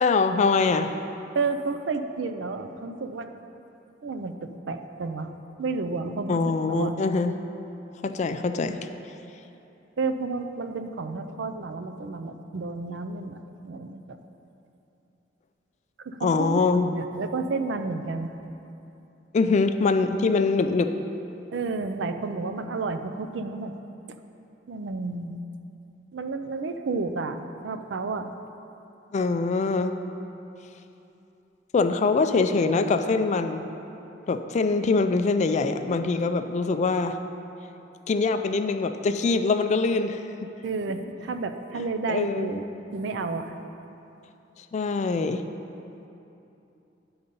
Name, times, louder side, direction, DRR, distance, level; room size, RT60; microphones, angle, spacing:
voice 1, 0.0-0.9 6.3-7.3 8.0-8.8 16.2-16.9 19.3-20.9 29.1-29.9 31.7-33.7 34.3-37.2 38.1-40.5 42.1-42.6 44.7-45.4, left 4 dB, 40° left, 9 dB, 0.3 m, -23 dB
voice 2, 1.3-3.3 4.0-5.3 5.6-6.4 6.7-6.9 10.0-14.2 16.0-18.3 21.5-23.7 24.7-25.3 26.1-27.4 27.6-28.3 40.6-42.6 42.9-43.5, right 3 dB, 70° right, 8 dB, 0.4 m, -31 dB
9.9 x 3.9 x 5.4 m, 2.9 s
head